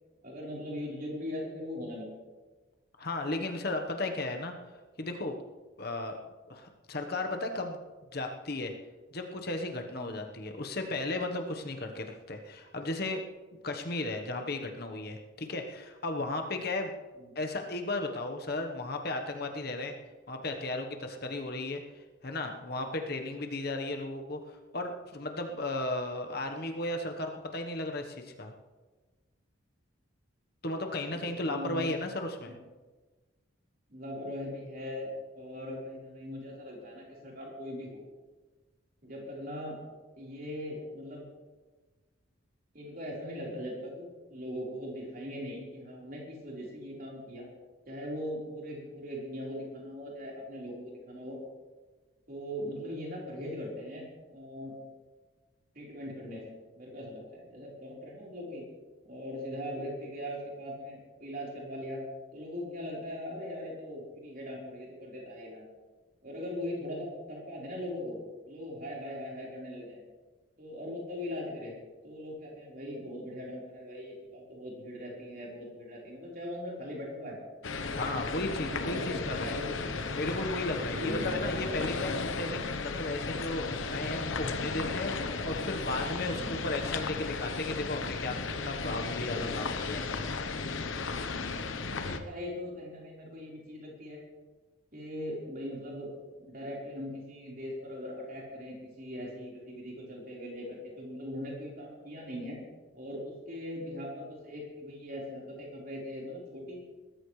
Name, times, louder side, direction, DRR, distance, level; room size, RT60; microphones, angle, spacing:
voice 1, 0.2-2.2 9.9-10.2 17.2-17.4 31.1-31.9 32.5-32.6 33.9-38.0 39.0-39.7 40.2-41.3 42.7-47.5 47.9-51.4 52.3-54.7 55.7-56.4 56.7-58.7 59.1-62.0 62.3-65.7 66.2-68.2 68.5-70.0 70.6-71.7 72.0-77.4 78.1-78.3 78.6-80.0 80.8-81.4 86.3-86.6 91.9-94.2 94.9-96.1 96.4-102.6 102.9-106.8, left 1 dB, 45° right, -3 dB, 4.3 m, -40 dB
voice 2, 3.0-4.5 5.0-5.4 5.8-6.2 6.5-7.8 8.1-8.7 9.1-13.3 13.6-16.9 17.3-19.9 20.3-28.5 30.6-32.6 77.9-79.5 80.1-90.1, left 2 dB, 50° left, 4 dB, 1.2 m, -35 dB
sound 1, 77.6-92.2, left 4 dB, 75° left, 1.0 m, -35 dB
20.5 x 13.5 x 3.3 m, 1.3 s
head